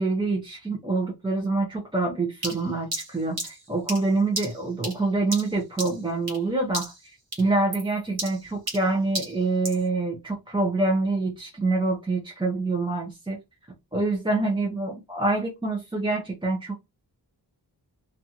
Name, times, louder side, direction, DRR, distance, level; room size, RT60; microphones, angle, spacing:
voice 1, 0.0-13.4 13.9-16.8, right 3 dB, 10° right, -1 dB, 0.6 m, -26 dB
sound 1, 2.4-6.5 6.7-7.1 7.3-9.9, right 2 dB, 60° right, 1.3 m, -34 dB
2.6 x 2.3 x 2.7 m, 0.23 s
wide cardioid pair, 90°, 42 cm